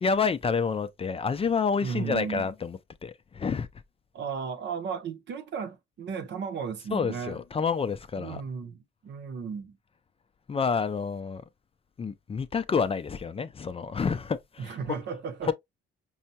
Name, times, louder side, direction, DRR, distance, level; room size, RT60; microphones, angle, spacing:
voice 1, 0.0-3.7 6.9-8.4 10.5-11.4 12.0-15.0 15.4-15.5, left 5 dB, 30° left, 0.4 m, -28 dB
voice 2, 1.8-2.5 4.1-7.4 8.2-9.8 14.6-15.5, right 6 dB, 60° right, 0.8 m, -35 dB
5.5 x 2.2 x 2.7 m
cardioid pair, 90°, 20 cm